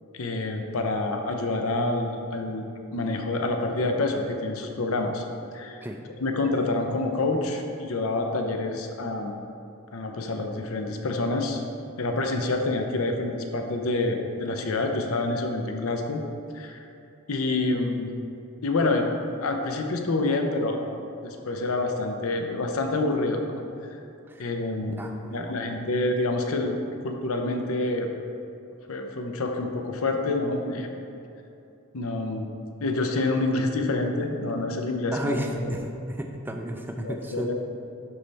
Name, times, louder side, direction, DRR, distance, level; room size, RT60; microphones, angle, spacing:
voice 1, 0.1-5.2 5.5-5.8 6.2-9.3 9.9-11.6 12.0-16.2 16.5-16.8 17.3-18.1 18.6-19.1 19.4-20.9 21.2-23.6 24.4-25.0 25.3-26.8 27.0-28.1 28.9-30.9 31.9-32.5 32.8-35.6 37.0-37.5, left 2 dB, 80° left, 4 dB, 0.7 m, -27 dB
voice 2, 25.0-25.5 35.1-37.5, equal, 10° right, 3 dB, 0.4 m, -32 dB
11.0 x 4.1 x 3.4 m, 2.6 s
head